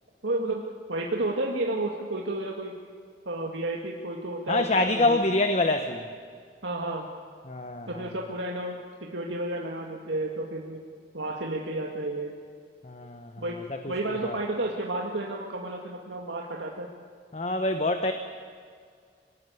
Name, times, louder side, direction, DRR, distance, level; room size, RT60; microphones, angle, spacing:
voice 1, 0.2-0.6 0.9-2.7 3.3-4.6 5.0-5.2 6.6-7.1 7.9-10.8 11.1-12.4 13.4-13.6 13.9-16.9, right 2 dB, 85° right, -1 dB, 2.0 m, -31 dB
voice 2, 4.5-6.1 7.5-8.0 12.8-13.4 13.7-13.9 14.2-14.4 17.3-18.1, left 2 dB, 35° left, 7 dB, 1.1 m, -26 dB
24.5 x 19.0 x 9.4 m, 2.1 s
head